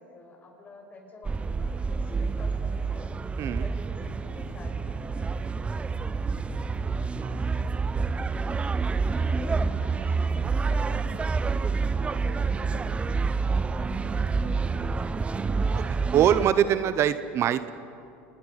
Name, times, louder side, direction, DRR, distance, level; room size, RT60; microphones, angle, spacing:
voice 1, 0.0-3.2 3.5-5.6 7.2-7.5 8.9-16.8 17.3-17.4, left 3 dB, 25° left, 2 dB, 5.7 m, -48 dB
sound 1, 1.3-16.5, right 4 dB, 20° right, 0.6 m, -28 dB
sound 2, 2.1-2.9 3.6-4.8 5.3-5.5 5.9-6.1 6.5-6.8 7.5-7.6, left 5 dB, 70° left, 5.2 m, -49 dB
voice 2, 16.1-17.7, right 10 dB, 45° right, 13 dB, 0.8 m, -23 dB
28.5 x 20.5 x 5.8 m, 2.6 s
supercardioid pair, 105°, 6 cm